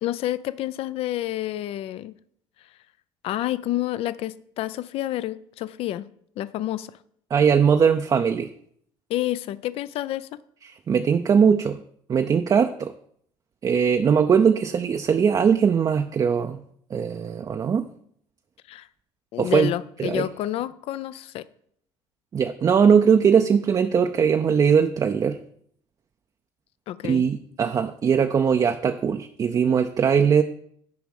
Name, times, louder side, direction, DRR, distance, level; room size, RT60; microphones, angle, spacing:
voice 1, 0.0-2.1 3.2-6.0 6.4-6.9 9.1-10.3 18.7-18.9 19.3-21.4 26.9-27.2, left 13 dB, 60° left, 17 dB, 0.4 m, -29 dB
voice 2, 7.3-8.5 10.6-11.8 12.1-12.9 13.6-16.6 16.9-17.9 19.4-19.7 20.0-20.3 22.3-25.4 27.0-30.4, right 7 dB, 35° right, 7 dB, 0.5 m, -20 dB
7.0 x 5.0 x 6.4 m, 0.66 s
supercardioid pair, 95°, 11 cm